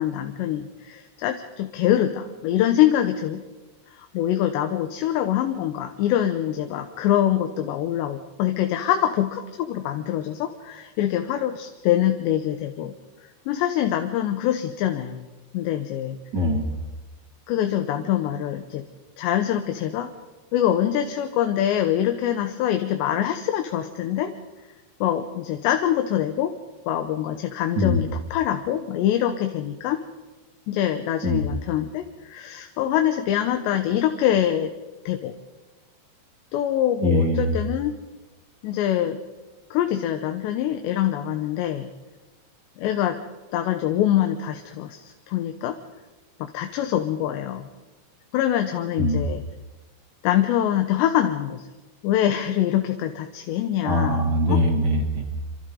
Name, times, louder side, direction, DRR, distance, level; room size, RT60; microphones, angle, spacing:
voice 1, 0.0-3.4 3.9-12.9 13.5-15.3 15.5-16.2 17.5-18.8 19.2-20.1 20.5-24.3 25.0-26.5 26.9-30.0 30.7-34.7 35.1-35.4 36.5-37.9 38.6-39.2 39.7-41.9 42.8-43.2 43.5-45.8 46.4-47.7 48.3-49.4 50.2-51.7 52.0-54.6, left 11 dB, 80° left, 6 dB, 3.2 m, -24 dB
voice 2, 16.3-16.7 27.7-28.0 31.2-31.5 37.0-37.5 49.0-49.2 53.8-55.3, equal, 35° right, 3 dB, 1.8 m, -22 dB
27.5 x 26.0 x 3.9 m, 1.2 s
omnidirectional pair, 5.1 m